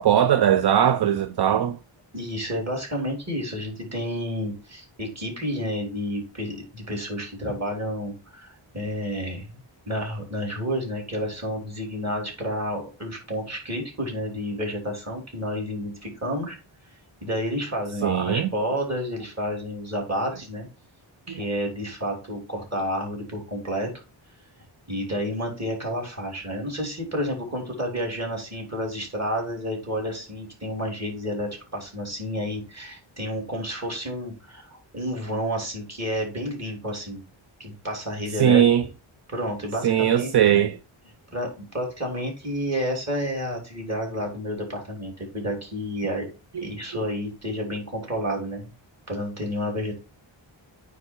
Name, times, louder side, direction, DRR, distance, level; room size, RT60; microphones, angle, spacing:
voice 1, 0.0-1.8 18.0-18.5 21.3-21.4 38.4-38.8 39.8-40.8 46.6-46.7, right 10 dB, 55° right, 0.5 m, -20 dB
voice 2, 2.1-9.5 9.9-16.6 17.2-20.7 21.3-23.9 24.9-37.2 37.6-38.6 39.3-40.3 41.3-46.3 46.6-48.7 49.1-50.0, equal, 35° right, 3.0 m, -30 dB
9.2 x 3.5 x 4.4 m
wide cardioid pair, 105°, 48 cm